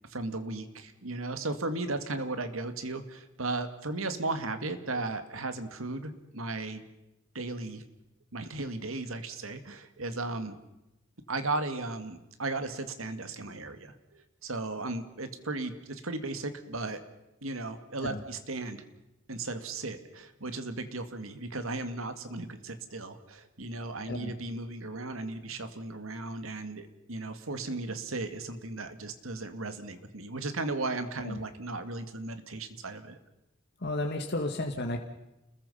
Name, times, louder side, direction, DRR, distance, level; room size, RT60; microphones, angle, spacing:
voice 1, 0.1-6.8 7.3-7.8 8.3-10.6 11.3-17.0 17.4-18.8 19.3-33.2, right 2 dB, 80° right, 9 dB, 2.3 m, -36 dB
voice 2, 33.8-35.0, left 1 dB, 55° left, 3 dB, 1.9 m, -32 dB
29.5 x 21.0 x 5.7 m, 0.91 s
head